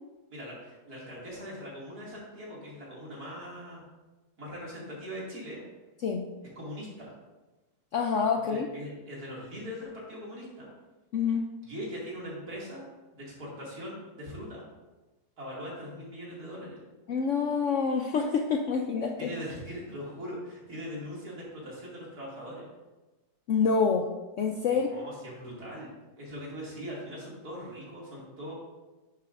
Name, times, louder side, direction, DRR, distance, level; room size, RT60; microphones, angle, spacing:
voice 1, 0.3-3.8 4.4-5.6 6.6-7.1 8.5-10.7 11.7-12.9 13.1-14.7 15.4-16.8 19.2-22.6 24.7-25.9 26.2-28.5, equal, 60° right, -5 dB, 3.0 m, -41 dB
voice 2, 7.9-8.7 11.1-11.5 17.1-19.3 23.5-24.1 24.4-24.9, left 5 dB, 65° left, 2 dB, 0.8 m, -27 dB
9.9 x 7.0 x 2.6 m, 1.2 s
omnidirectional pair, 1.8 m